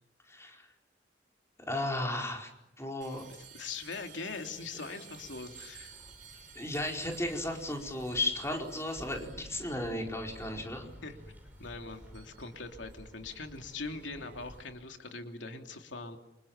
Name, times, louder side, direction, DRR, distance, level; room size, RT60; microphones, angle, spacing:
voice 1, 0.3-0.7 1.7-2.5 2.8-3.2 6.5-10.9, left 1 dB, 15° left, 2 dB, 4.7 m, -34 dB
sound 1, 3.0-14.7, right 5 dB, 45° right, 7.8 m, -54 dB
voice 2, 3.5-6.0 7.1-7.2 11.0-11.2 11.6-16.2, left 3 dB, 85° left, 4 dB, 3.0 m, -42 dB
sound 2, 5.1-14.6, equal, 10° right, 5.1 m, -53 dB
28.5 x 27.5 x 7.3 m, 0.88 s
head